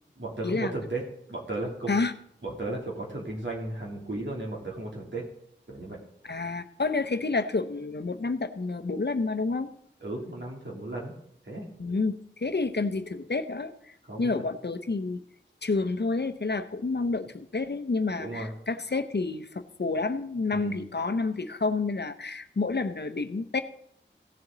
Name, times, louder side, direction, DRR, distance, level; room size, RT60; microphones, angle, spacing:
voice 1, 0.2-1.0 1.3-1.9 2.4-5.2 5.7-6.0 10.0-11.1 11.4-11.7 14.1-14.4 18.1-18.5 20.5-20.8, right 2 dB, 70° right, -3 dB, 3.0 m, -35 dB
voice 2, 6.2-9.7 11.8-15.2 15.6-23.6, left 3 dB, 60° left, 10 dB, 0.7 m, -29 dB
16.5 x 7.1 x 3.9 m, 0.69 s
wide cardioid pair, 50°, 20 cm